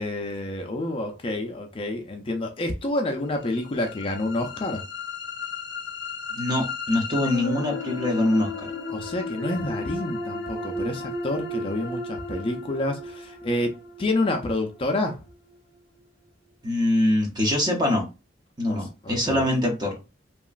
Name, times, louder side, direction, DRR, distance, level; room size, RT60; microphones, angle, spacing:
voice 1, 0.0-4.8 8.9-15.2 18.7-19.4, left 2 dB, 30° left, 0.4 m, -28 dB
sound 1, 3.5-15.5, left 3 dB, 85° left, 0.5 m, -34 dB
voice 2, 6.3-8.7 16.6-18.1 18.6-19.9, left 1 dB, 25° right, 0.7 m, -24 dB
2.9 x 2.4 x 2.4 m
head